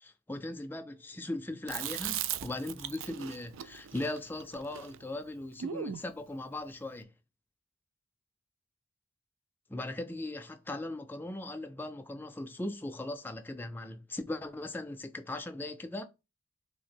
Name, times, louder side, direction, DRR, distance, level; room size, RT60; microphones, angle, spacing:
voice 1, 0.0-7.1 9.7-16.0, left 2 dB, 10° left, 0.3 m, -39 dB
Chewing mastication, 1.7-6.1, right 10 dB, 75° right, 0.3 m, -39 dB
3.4 x 2.9 x 4.3 m
head